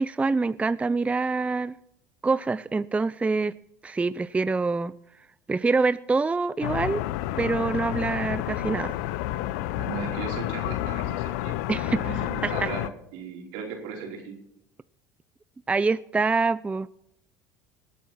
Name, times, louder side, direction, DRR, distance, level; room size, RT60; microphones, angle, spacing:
voice 1, 0.0-1.7 2.2-3.5 3.8-4.9 5.5-7.0 7.4-9.0 11.7-12.7 15.7-16.9, right 3 dB, 15° right, 0.4 m, -25 dB
sound 1, 6.6-12.9, left 14 dB, 75° left, 0.6 m, -30 dB
voice 2, 9.8-14.3, right 6 dB, 75° right, 4.6 m, -37 dB
19.5 x 8.4 x 4.5 m
hypercardioid pair, 80°, 9 cm